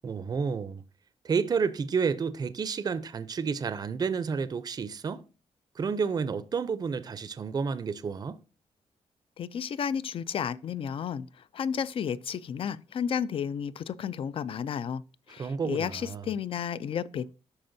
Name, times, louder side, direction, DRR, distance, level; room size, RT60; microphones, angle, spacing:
voice 1, 0.0-0.8 1.2-5.2 5.8-8.4 15.4-16.3, right 5 dB, 35° right, 0.5 m, -30 dB
voice 2, 9.4-15.0 15.3-17.3, left 7 dB, 50° left, 0.4 m, -32 dB
13.0 x 4.3 x 2.6 m
wide cardioid pair, 130°, 12 cm